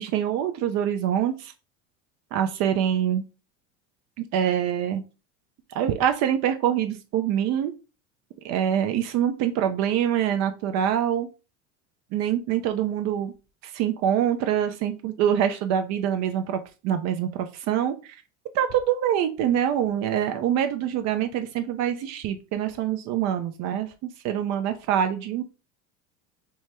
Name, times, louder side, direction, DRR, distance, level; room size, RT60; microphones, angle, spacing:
voice 1, 0.0-1.5 2.3-3.2 4.2-5.0 5.7-7.7 8.4-11.3 12.1-13.3 13.6-18.2 18.5-23.9 24.2-25.4, right 10 dB, 50° right, 8 dB, 0.4 m, -25 dB
3.4 x 2.1 x 2.9 m, 0.32 s
hypercardioid pair, 90°, 37 cm